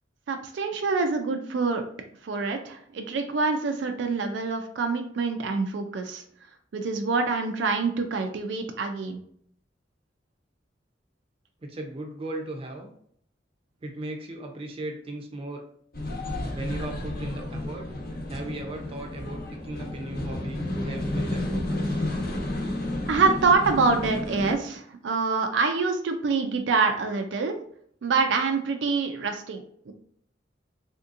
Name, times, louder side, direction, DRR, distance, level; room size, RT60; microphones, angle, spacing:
voice 1, 0.3-1.8 2.2-6.2 6.7-9.2 23.1-27.6 28.0-29.9, right 4 dB, 85° right, 5 dB, 0.4 m, -26 dB
voice 2, 11.6-12.9 13.8-15.6 16.5-17.9 18.3-22.0, right 2 dB, 30° right, 2 dB, 0.5 m, -37 dB
sound 1, 15.9-24.5, left 1 dB, 55° left, 0.9 m, -31 dB
3.5 x 2.7 x 2.5 m, 0.63 s
head